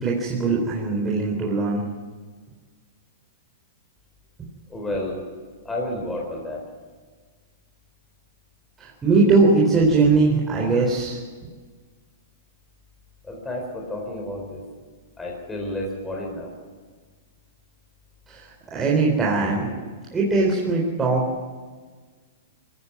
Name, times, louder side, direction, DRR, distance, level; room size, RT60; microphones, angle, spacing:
voice 1, 0.0-1.8 8.8-11.2 18.3-19.7 20.1-21.2, right 3 dB, 15° right, -4 dB, 3.9 m, -20 dB
voice 2, 4.7-5.2 5.6-6.6 13.2-14.6 15.2-16.5, left 1 dB, 10° left, -1 dB, 4.4 m, -31 dB
21.0 x 15.5 x 9.7 m, 1.5 s
hypercardioid pair, 135°, 0 cm